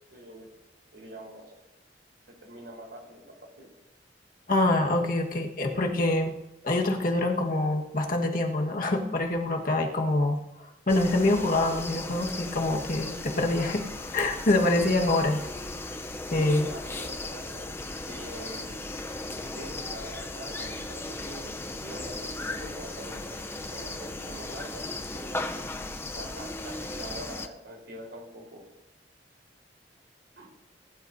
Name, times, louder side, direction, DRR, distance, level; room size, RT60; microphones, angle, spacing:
voice 1, 0.1-0.5 0.9-1.6 2.3-3.7 16.3-17.7 18.1-18.7 19.3-24.9 25.1-25.5 26.2-28.7 30.4-30.5, right 1 dB, 80° right, 0 dB, 4.1 m, -44 dB
voice 2, 4.5-6.3 6.6-13.8 14.1-15.4 16.3-16.7, left 2 dB, 50° left, 2 dB, 1.5 m, -25 dB
sound 1, 10.9-27.5, left 2 dB, 15° left, 0.6 m, -37 dB
20.0 x 11.5 x 2.7 m, 0.94 s
head